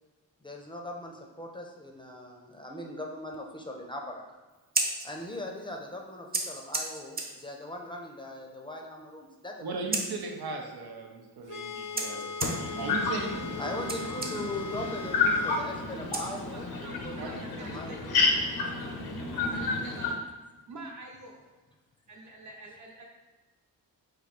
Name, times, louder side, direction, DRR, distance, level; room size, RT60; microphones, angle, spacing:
voice 1, 0.4-4.2 5.0-9.8 12.1-12.3 13.6-15.3 15.6-18.2, left 1 dB, 15° left, 1 dB, 0.6 m, -40 dB
Scissors, 4.5-16.9, right 2 dB, 25° right, 0.6 m, -38 dB
voice 2, 9.6-12.3 12.8-13.3 17.2-17.3 17.7-17.8, right 3 dB, 90° right, 2 dB, 0.8 m, -37 dB
sound 1, 11.5-15.7, left 5 dB, 55° left, 0.6 m, -39 dB
voice 3, 12.4-20.1, left 3 dB, 90° left, 1 dB, 0.8 m, -30 dB
voice 4, 16.5-18.2 18.6-20.2 20.7-21.4 22.1-23.0, right 2 dB, 50° right, 0 dB, 1.0 m, -46 dB
4.8 x 2.7 x 4.2 m, 1.2 s
wide cardioid pair, 115°, 36 cm